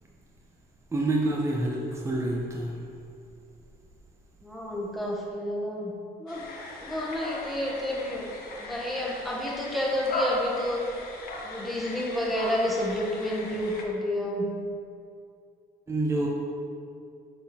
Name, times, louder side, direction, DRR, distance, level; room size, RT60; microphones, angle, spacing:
voice 1, 0.9-2.8 15.9-16.3, right 2 dB, 15° right, -2 dB, 0.7 m, -27 dB
voice 2, 4.4-5.9 6.2-6.5 6.8-8.3 8.6-11.1 11.4-14.5 16.2-16.3, left 1 dB, ahead, -3 dB, 1.1 m, -30 dB
sound 1, 6.3-13.8, left 2 dB, 60° left, 1.0 m, -37 dB
6.4 x 3.9 x 4.2 m, 2.5 s
cardioid pair, 110°, 17 cm